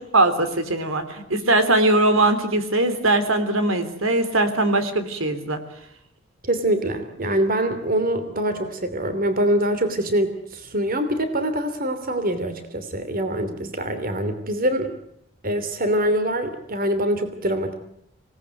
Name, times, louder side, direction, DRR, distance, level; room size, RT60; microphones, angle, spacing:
voice 1, 0.1-5.6, right 2 dB, 75° right, 10 dB, 3.6 m, -20 dB
voice 2, 6.4-14.9 15.4-17.7, right 1 dB, 45° right, 9 dB, 2.9 m, -24 dB
27.5 x 18.5 x 9.4 m, 0.77 s
head